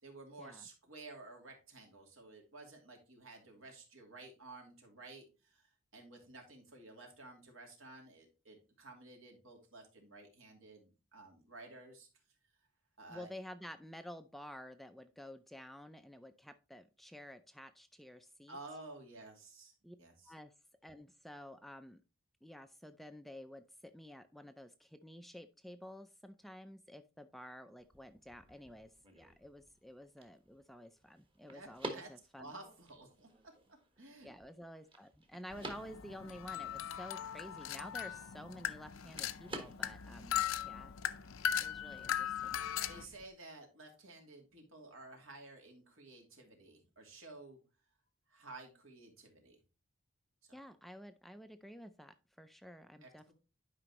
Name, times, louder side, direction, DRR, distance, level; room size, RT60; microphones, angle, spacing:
voice 1, 0.0-5.6 5.9-12.1 13.0-13.3 18.5-19.7 20.0-20.3 31.5-34.3 42.9-47.6 48.3-49.6 50.4-50.6 53.0-53.3, right 2 dB, 75° right, 2 dB, 2.6 m, -53 dB
voice 2, 13.1-18.6 19.8-20.0 20.2-20.5 20.8-22.0 22.4-32.5 34.2-40.9 41.6-42.6 50.5-53.3, equal, ahead, 9 dB, 0.4 m, -51 dB
sound 1, 27.8-43.3, right 2 dB, 25° right, 1.3 m, -53 dB
sound 2, 35.5-43.0, left 9 dB, 75° left, 0.6 m, -39 dB
11.0 x 5.1 x 2.9 m, 0.31 s
head